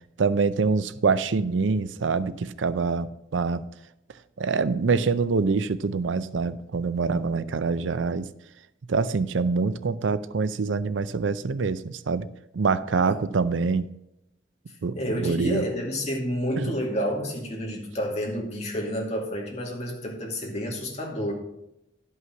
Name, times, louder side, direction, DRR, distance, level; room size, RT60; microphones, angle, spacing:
voice 1, 0.2-3.6 4.4-8.3 8.9-12.3 12.5-13.9 14.8-15.7 16.6-16.7, right 4 dB, 75° right, 15 dB, 0.5 m, -25 dB
voice 2, 14.9-21.3, equal, 35° left, -1 dB, 2.3 m, -29 dB
11.0 x 5.6 x 5.9 m, 0.86 s
head